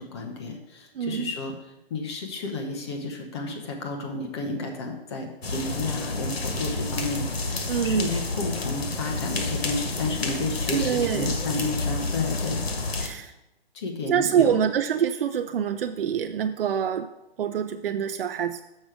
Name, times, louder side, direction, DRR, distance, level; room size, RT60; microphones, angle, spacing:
voice 1, 0.0-1.5 1.9-12.6 13.7-14.6, left 3 dB, 25° left, 2 dB, 1.0 m, -32 dB
voice 2, 1.0-1.3 7.7-8.1 10.7-11.3 13.0-13.3 14.1-17.1 17.4-18.6, right 8 dB, 65° right, 8 dB, 0.5 m, -25 dB
sound 1, 5.4-13.1, left 2 dB, 85° left, 1.6 m, -29 dB
6.4 x 6.2 x 5.0 m, 0.92 s
hypercardioid pair, 160°, 30 cm